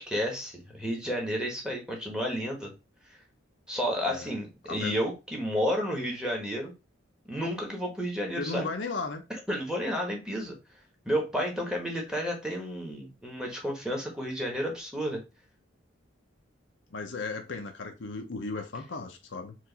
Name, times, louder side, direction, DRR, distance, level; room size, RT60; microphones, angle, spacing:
voice 1, 0.0-2.7 3.7-6.7 7.3-8.7 9.5-10.5 11.0-15.2, equal, 5° right, 1.2 m, -31 dB
voice 2, 8.4-9.2 16.9-19.6, left 3 dB, 65° left, 0.7 m, -35 dB
4.6 x 2.6 x 3.9 m
head